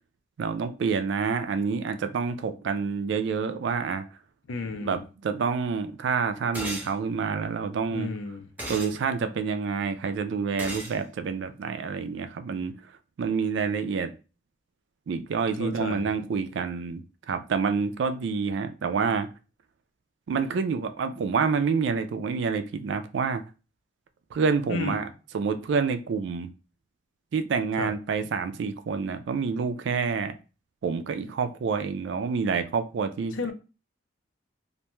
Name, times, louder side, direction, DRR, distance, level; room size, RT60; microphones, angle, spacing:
voice 1, 0.4-4.0 4.8-8.1 8.7-12.7 13.2-14.1 15.1-19.3 20.3-23.4 24.3-25.1 25.3-26.5 27.3-30.4 30.8-33.4, right 5 dB, 65° right, 0.3 m, -28 dB
voice 2, 4.5-5.1 7.9-8.5 15.6-16.1 24.7-25.0 27.8-27.9 33.3-33.5, left 4 dB, 85° left, 0.5 m, -33 dB
sound 1, 6.5-6.9 8.6-8.9 10.6-11.0, right 1 dB, 10° right, 0.5 m, -34 dB
2.5 x 2.2 x 3.0 m
head